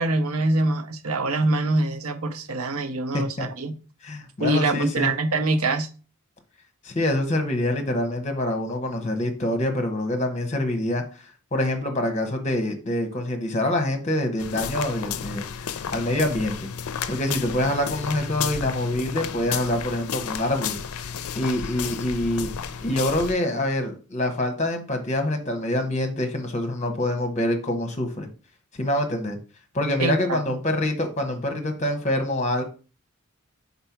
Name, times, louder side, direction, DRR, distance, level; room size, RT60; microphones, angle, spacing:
voice 1, 0.0-3.8 4.4-5.9 30.0-30.4, right 2 dB, 75° right, 0.7 m, -24 dB
voice 2, 3.1-3.5 4.0-5.1 6.8-11.0 11.5-16.7 17.1-22.5 22.8-28.3 28.8-29.4 29.7-32.6, left 1 dB, 30° left, 1.0 m, -26 dB
sound 1, 14.4-23.4, left 7 dB, 80° left, 0.4 m, -32 dB
4.4 x 4.1 x 5.7 m
head